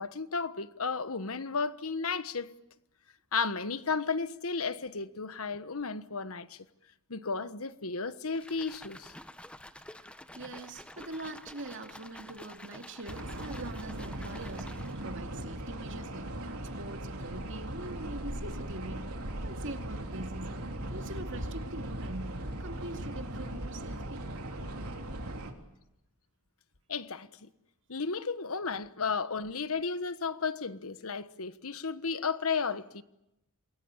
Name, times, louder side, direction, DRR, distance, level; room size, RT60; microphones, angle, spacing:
voice 1, 0.0-2.5 3.3-6.6 7.1-9.1 26.9-27.5 27.9-33.0, left 5 dB, 70° left, 1.3 m, -33 dB
sound 1, 8.3-15.2, left 1 dB, 5° left, 1.1 m, -49 dB
voice 2, 9.9-19.1 19.4-20.6 20.9-24.2, right 2 dB, 55° right, 2.5 m, -43 dB
sound 2, 13.1-25.5, right 1 dB, 80° right, 3.8 m, -39 dB
27.5 x 22.5 x 9.0 m
head